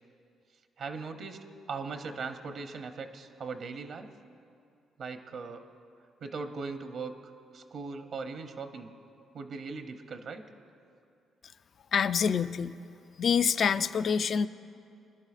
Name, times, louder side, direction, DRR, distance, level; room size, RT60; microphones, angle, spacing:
voice 1, 0.8-4.1 5.0-5.7 6.2-7.1 7.5-8.9 9.3-10.4, right 4 dB, 60° right, 7 dB, 0.7 m, -39 dB
voice 2, 11.9-12.8 13.2-14.5, left 6 dB, 55° left, 14 dB, 0.3 m, -26 dB
20.5 x 11.0 x 2.5 m, 2.5 s
cardioid pair, 90°, 0 cm